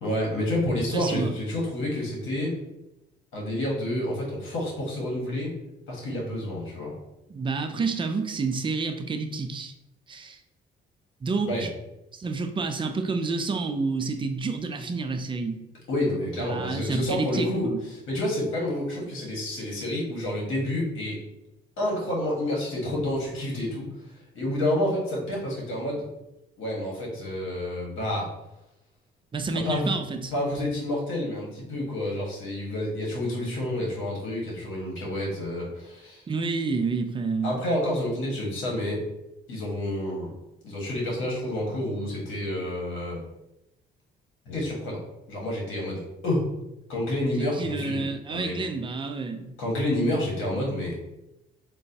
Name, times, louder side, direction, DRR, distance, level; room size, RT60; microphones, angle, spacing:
voice 1, 0.0-2.5 3.3-5.5 5.9-7.0 11.5-11.6 15.9-17.7 18.1-21.2 21.8-23.9 24.3-26.1 26.6-28.3 29.5-30.0 30.3-36.2 37.4-39.0 39.5-40.3 40.6-43.2 44.4-45.0 45.3-46.5 46.9-48.6 49.6-51.0, left 1 dB, 80° left, -3 dB, 1.3 m, -29 dB
voice 2, 0.9-1.3 7.3-9.7 10.1-10.4 11.2-11.7 12.1-15.6 16.4-17.8 29.3-30.3 36.3-37.6 47.4-49.5, right 4 dB, 25° right, 6 dB, 0.4 m, -29 dB
3.8 x 2.2 x 2.7 m, 0.91 s
cardioid pair, 90°, 20 cm